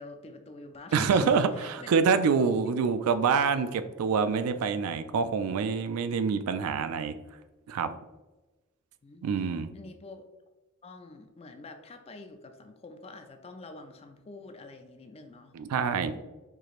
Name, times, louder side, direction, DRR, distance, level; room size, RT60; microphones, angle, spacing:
voice 1, 0.0-1.9 2.6-2.7 9.0-9.2 9.7-10.3 10.8-15.6 16.1-16.2, left 3 dB, 25° left, 7 dB, 0.3 m, -46 dB
voice 2, 0.9-7.2 7.7-7.9 9.2-9.7 15.5-16.1, right 5 dB, 75° right, 11 dB, 0.3 m, -26 dB
4.6 x 3.0 x 2.4 m, 1.1 s
head